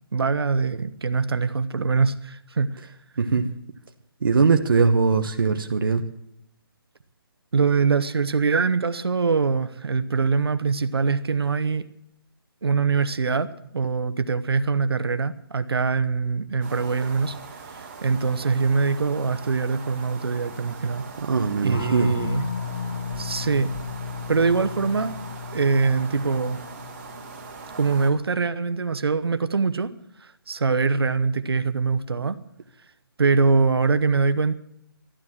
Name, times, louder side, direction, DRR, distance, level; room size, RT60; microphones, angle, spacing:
voice 1, 0.1-2.9 7.5-11.9 12.6-17.4 17.7-21.0 21.6-22.5 23.2-23.7 24.3-25.1 25.5-26.6 27.8-29.9 30.2-32.4 33.2-34.5, right 4 dB, 90° right, 11 dB, 1.0 m, -23 dB
voice 2, 3.2-3.5 4.2-6.1 21.2-22.1, right 5 dB, 65° right, 5 dB, 1.1 m, -21 dB
sound 1, 16.6-28.1, right 4 dB, 30° right, 3.0 m, -41 dB
sound 2, 21.7-28.0, left 6 dB, 55° left, 1.1 m, -34 dB
12.5 x 12.5 x 7.4 m, 0.76 s
hypercardioid pair, 170°, 13 cm